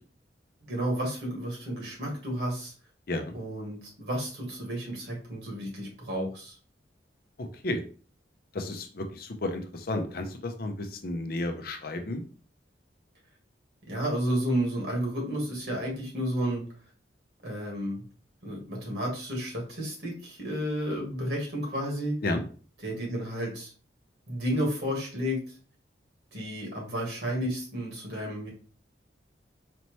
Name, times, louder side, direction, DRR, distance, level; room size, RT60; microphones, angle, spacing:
voice 1, 0.6-2.7 3.3-6.6 13.9-16.6 17.4-18.0 18.4-22.1 22.8-23.7 24.3-25.4 26.3-28.5, equal, 60° right, -2 dB, 1.8 m, -31 dB
voice 2, 7.4-7.8 8.5-12.2 22.2-22.4, left 2 dB, 50° left, 5 dB, 0.6 m, -32 dB
4.3 x 2.9 x 3.0 m, 0.39 s
head